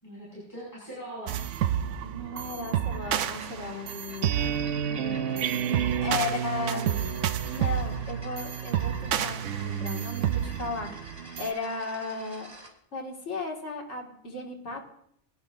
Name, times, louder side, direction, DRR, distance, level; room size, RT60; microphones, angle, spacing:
voice 1, 0.0-1.4 4.9-7.1, equal, 15° left, -7 dB, 5.8 m, -42 dB
sound 1, 1.3-11.5, right 9 dB, 90° right, 1.0 m, -29 dB
voice 2, 2.0-4.3 6.0-6.9 7.4-10.9 11.4-12.5 12.9-14.9, left 4 dB, 75° left, -1 dB, 2.4 m, -35 dB
sound 2, 2.6-12.7, right 1 dB, 30° right, 2.2 m, -47 dB
22.5 x 11.5 x 2.6 m, 0.69 s
omnidirectional pair, 1.2 m